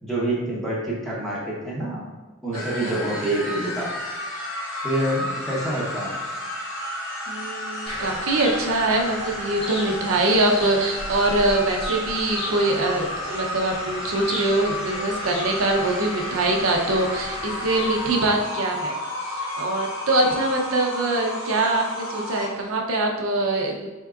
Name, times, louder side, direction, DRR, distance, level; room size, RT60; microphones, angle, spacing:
voice 1, 0.0-2.1 2.4-3.9 4.8-6.2, right 1 dB, ahead, -7 dB, 0.9 m, -27 dB
sound 1, 2.5-22.5, left 1 dB, 70° left, 0.9 m, -32 dB
voice 2, 2.5-2.9 7.3-18.9 19.2-23.9, right 2 dB, 85° right, 1 dB, 0.6 m, -23 dB
sound 2, 7.9-18.1, equal, 25° left, 0.6 m, -35 dB
4.5 x 3.5 x 2.4 m, 1.2 s
head